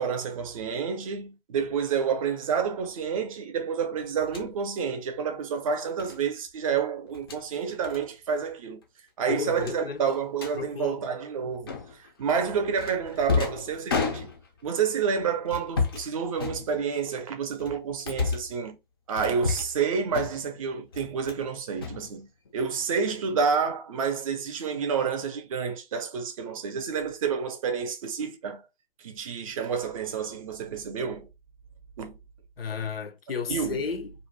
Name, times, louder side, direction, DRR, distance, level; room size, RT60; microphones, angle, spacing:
voice 1, 0.0-8.8 9.2-11.7 12.2-14.3 14.6-18.8 19.1-22.3 22.5-28.6 29.0-31.3 32.0-32.2 33.5-33.8, right 6 dB, 35° right, 0.5 m, -29 dB
sound 1, 4.2-4.5 6.0-6.2 7.1-7.4 7.8-8.0 8.3-8.5 8.8-8.9 9.6-10.6 11.7-12.1 12.8-14.6 15.5-16.1 16.4-17.1 17.6-18.5 19.2-19.8 20.1-20.6 20.9-21.5 21.8-22.6, left 5 dB, 25° left, 0.3 m, -31 dB
voice 2, 9.3-10.0 10.6-11.0 32.6-34.1, left 6 dB, 85° left, 0.6 m, -33 dB
2.5 x 2.1 x 2.9 m
figure-of-eight pair, 140°, 29 cm